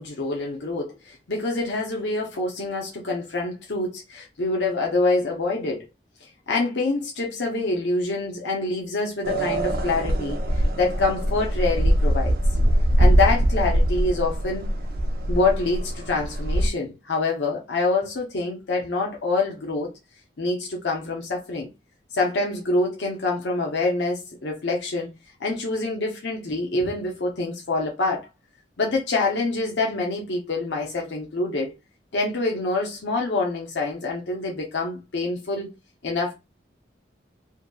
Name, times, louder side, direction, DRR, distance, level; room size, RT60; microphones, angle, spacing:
voice 1, 0.0-5.9 6.5-12.4 13.0-14.7 15.3-19.9 20.4-21.7 22.1-25.1 25.4-28.3 28.8-31.7 32.1-35.7 36.0-36.3, left 3 dB, 70° left, 0.7 m, -26 dB
sound 1, 9.2-16.7, equal, 50° right, 0.4 m, -22 dB
2.7 x 2.6 x 2.2 m
head